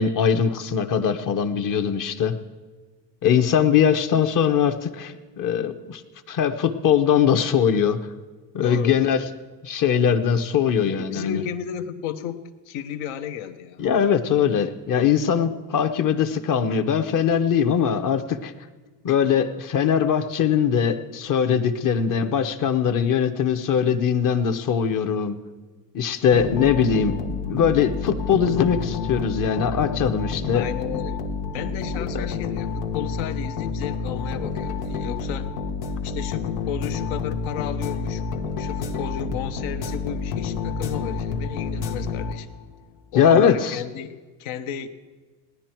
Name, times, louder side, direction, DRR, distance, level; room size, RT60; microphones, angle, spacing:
voice 1, 0.0-2.4 3.2-6.0 6.3-8.0 8.5-9.2 9.6-11.4 13.8-18.5 19.0-25.4 25.9-30.6 31.8-32.3 43.1-43.8, left 7 dB, 40° left, 9 dB, 1.0 m, -21 dB
voice 2, 8.6-9.2 10.9-13.9 30.5-31.2 31.5-35.5 36.0-38.2 38.6-42.5 43.1-44.9, left 8 dB, 65° left, 9 dB, 1.0 m, -33 dB
sound 1, 26.3-42.8, left 5 dB, 85° left, 1.3 m, -29 dB
18.0 x 10.5 x 4.5 m, 1.3 s
supercardioid pair, 110°, 50 cm